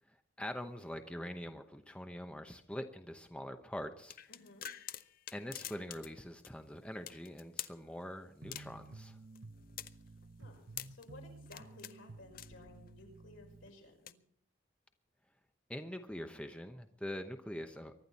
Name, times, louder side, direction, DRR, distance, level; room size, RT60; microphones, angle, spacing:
voice 1, 0.1-4.2 5.3-9.2 15.7-17.9, equal, 5° left, 6 dB, 0.8 m, -44 dB
sound 1, 4.1-6.2 6.4-6.5 7.1-7.8 8.5-8.9 9.4-11.0 11.5-12.0 12.3-12.9 13.9-14.1, left 11 dB, 45° left, 0.6 m, -46 dB
voice 2, 4.3-4.7 10.4-14.2, left 2 dB, 75° left, 1 dB, 5.7 m, -56 dB
sound 2, 8.4-13.7, right 2 dB, 60° right, 0.8 m, -53 dB
24.0 x 11.5 x 4.2 m, 0.64 s
head